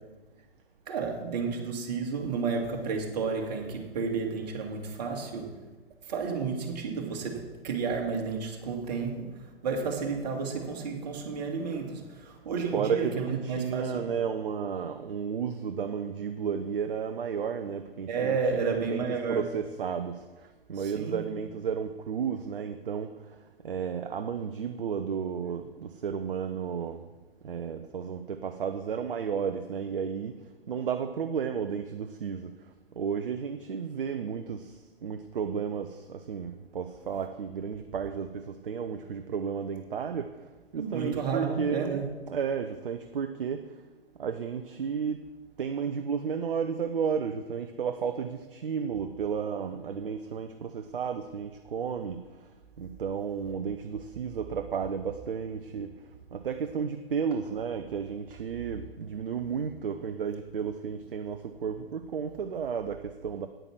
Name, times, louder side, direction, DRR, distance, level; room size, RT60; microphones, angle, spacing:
voice 1, 0.9-5.6 6.0-14.1 18.1-19.5 20.7-21.3 40.8-42.1, right 5 dB, 45° right, 2.1 m, -32 dB
voice 2, 12.7-27.1 27.4-30.4 30.7-43.8 44.2-45.2 45.6-52.5 52.8-63.5, right 7 dB, 60° right, 0.7 m, -33 dB
9.2 x 8.9 x 6.0 m
figure-of-eight pair, 120°, 30 cm